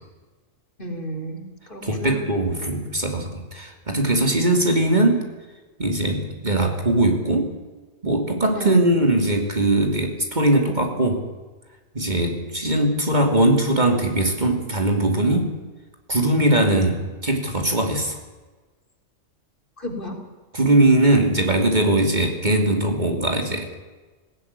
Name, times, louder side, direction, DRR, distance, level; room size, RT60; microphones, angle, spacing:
voice 1, 0.8-2.2 8.6-8.9 19.8-20.2, right 1 dB, 40° left, 3 dB, 3.9 m, -32 dB
voice 2, 1.8-5.3 5.8-7.5 8.0-11.3 11.9-15.5 16.1-18.2 20.5-23.7, right 1 dB, 35° right, 3 dB, 3.0 m, -20 dB
19.0 x 17.5 x 9.7 m, 1.3 s
omnidirectional pair, 1.4 m